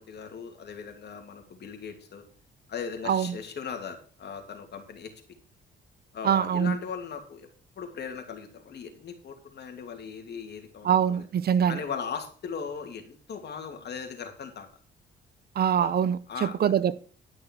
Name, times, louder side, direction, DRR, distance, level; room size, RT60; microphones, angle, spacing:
voice 1, 0.0-2.2 2.7-5.4 6.1-7.5 7.8-11.3 11.7-14.7 15.8-15.9 16.3-16.6, left 6 dB, 60° left, 2.7 m, -38 dB
voice 2, 6.2-6.7 10.8-11.8 15.6-16.9, right 8 dB, 50° right, 0.7 m, -24 dB
11.5 x 6.2 x 6.3 m
cardioid pair, 90°, 20 cm